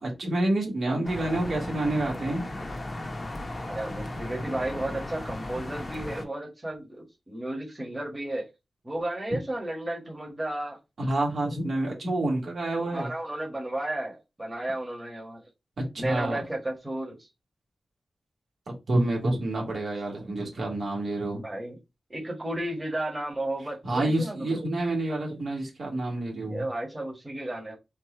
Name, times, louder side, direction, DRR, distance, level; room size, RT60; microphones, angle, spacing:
voice 1, 0.0-2.4 11.0-13.1 15.9-16.4 18.9-21.4 23.8-26.6, right 1 dB, 65° right, 1.9 m, -28 dB
sound 1, 1.0-6.2, left 1 dB, 30° left, 0.9 m, -36 dB
voice 2, 3.7-8.5 8.8-10.8 12.8-15.4 16.0-17.3 21.4-21.8 22.1-24.6 26.5-27.8, right 1 dB, 15° right, 1.5 m, -33 dB
4.5 x 2.5 x 4.4 m
wide cardioid pair, 130°, 0 cm